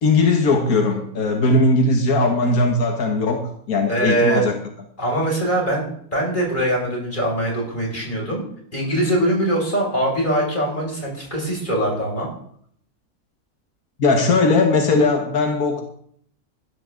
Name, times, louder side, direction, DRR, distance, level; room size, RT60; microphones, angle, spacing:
voice 1, 0.0-4.5 14.0-15.8, left 3 dB, 85° left, 3 dB, 1.9 m, -18 dB
voice 2, 3.9-4.5 5.0-8.4 8.7-12.3, right 1 dB, 35° left, -2 dB, 6.2 m, -22 dB
15.5 x 13.0 x 3.8 m, 0.64 s
omnidirectional pair, 1.5 m